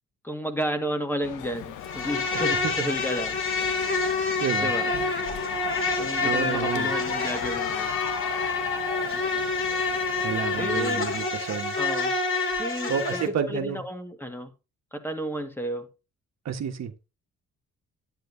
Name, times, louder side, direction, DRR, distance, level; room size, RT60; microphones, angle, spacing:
voice 1, 0.2-3.8 4.6-4.9 6.0-7.9 10.6-11.1 11.8-12.1 12.6-13.2 13.5-14.5 14.9-15.9, equal, 5° left, 1.7 m, -32 dB
sound 1, 1.2-11.3, left 10 dB, 90° left, 1.0 m, -38 dB
Insect, 1.8-13.3, left 3 dB, 40° left, 2.7 m, -27 dB
voice 2, 2.3-2.7 4.4-4.7 5.8-6.9 10.2-11.7 12.9-13.8 16.4-16.9, right 7 dB, 60° right, 1.4 m, -30 dB
10.0 x 9.4 x 2.7 m
cardioid pair, 90°, 30 cm